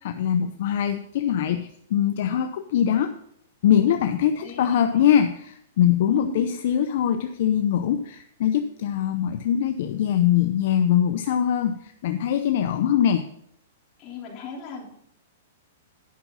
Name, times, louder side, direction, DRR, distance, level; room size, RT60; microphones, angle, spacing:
voice 1, 0.0-3.1 3.6-13.3, left 9 dB, 60° left, 8 dB, 0.6 m, -22 dB
voice 2, 4.4-5.1 6.1-6.5 14.0-14.9, left 6 dB, 30° left, -3 dB, 3.5 m, -36 dB
10.5 x 6.0 x 5.4 m, 0.71 s
hypercardioid pair, 145°, 0 cm